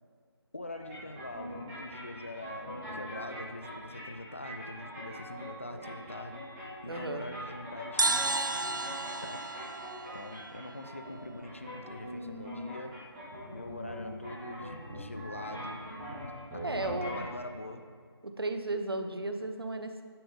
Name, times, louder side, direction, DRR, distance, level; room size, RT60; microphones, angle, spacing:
voice 1, 0.5-8.5 9.2-9.5 10.1-13.1 13.5-15.9 16.5-17.9, left 2 dB, 30° left, 7 dB, 0.4 m, -43 dB
sound 1, 0.7-17.2, equal, 10° right, 2.5 m, -43 dB
voice 2, 6.9-7.2 16.6-17.3 18.2-20.0, right 2 dB, 60° right, 7 dB, 0.9 m, -34 dB
sound 2, 8.0-11.5, right 3 dB, 45° right, 0.4 m, -33 dB
10.0 x 7.4 x 3.7 m, 2.1 s
figure-of-eight pair, 160°, 14 cm